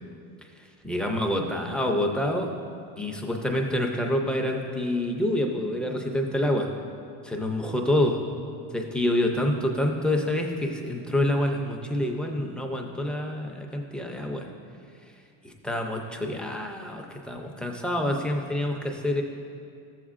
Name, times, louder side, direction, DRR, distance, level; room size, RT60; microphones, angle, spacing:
voice 1, 0.8-2.5 3.0-6.7 7.2-8.2 8.7-14.5 15.4-19.2, left 1 dB, 5° left, 1 dB, 0.4 m, -27 dB
13.5 x 7.2 x 2.4 m, 2.4 s
cardioid pair, 155°, 36 cm